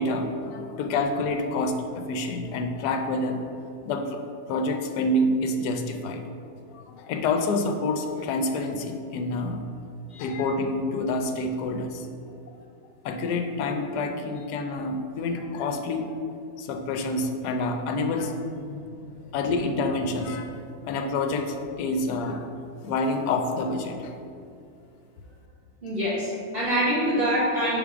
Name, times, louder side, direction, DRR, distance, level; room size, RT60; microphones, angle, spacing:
voice 1, 0.0-3.4 3.9-4.2 4.5-6.2 6.7-9.6 10.2-12.1 13.0-16.1 16.6-18.3 19.3-20.5 20.8-22.4 22.8-24.2, left 2 dB, 80° left, 5 dB, 1.2 m, -27 dB
voice 2, 25.8-27.8, equal, 35° right, -10 dB, 1.5 m, -25 dB
5.6 x 3.6 x 4.8 m, 2.5 s
omnidirectional pair, 1.7 m